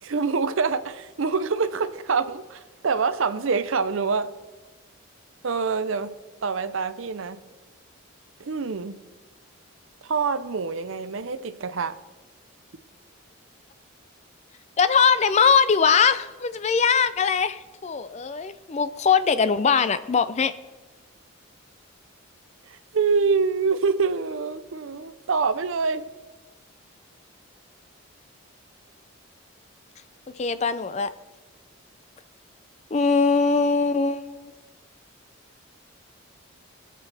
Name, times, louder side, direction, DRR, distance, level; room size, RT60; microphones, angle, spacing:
voice 1, 0.0-4.3 5.4-6.1 6.4-7.4 8.4-9.0 10.0-12.0 22.7-26.1, right 5 dB, 70° right, 13 dB, 0.6 m, -25 dB
voice 2, 14.8-20.5 30.4-31.1 32.9-34.5, left 5 dB, 30° left, 13 dB, 0.4 m, -21 dB
21.0 x 7.6 x 3.4 m, 1.3 s
head